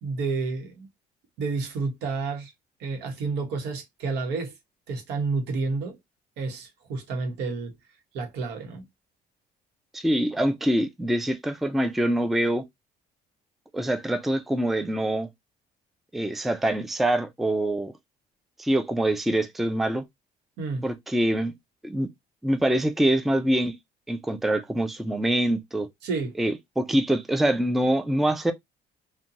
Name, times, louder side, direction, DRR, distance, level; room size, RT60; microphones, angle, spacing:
voice 1, 0.0-0.9 1.4-2.5 2.8-4.5 4.9-6.0 6.4-7.7 8.1-8.9 20.6-20.9 26.0-26.3, right 4 dB, 85° right, 1.0 m, -30 dB
voice 2, 9.9-12.6 13.7-15.3 16.1-17.9 18.6-20.0 20.8-21.5 21.8-22.1 22.4-23.8 24.1-25.9 26.4-28.5, right 1 dB, ahead, 0.3 m, -24 dB
2.6 x 2.2 x 2.7 m
cardioid pair, 110°, 17 cm